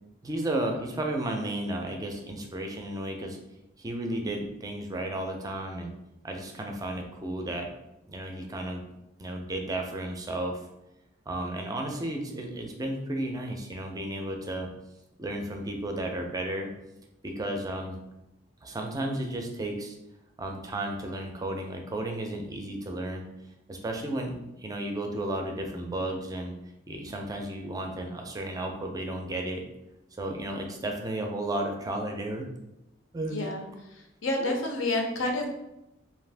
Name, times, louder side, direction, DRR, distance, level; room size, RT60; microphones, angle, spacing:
voice 1, 0.2-3.4 3.8-5.9 6.2-7.7 8.1-8.8 9.2-10.6 11.3-14.7 15.2-16.7 17.2-18.0 18.6-20.0 20.4-23.3 23.7-26.5 26.9-29.6 30.2-32.5 33.1-33.4 34.4-34.5, right 1 dB, 20° right, 2 dB, 0.4 m, -33 dB
voice 2, 33.3-33.6 34.2-35.5, left 2 dB, 80° left, 2 dB, 0.6 m, -28 dB
2.6 x 2.4 x 3.3 m, 0.91 s
head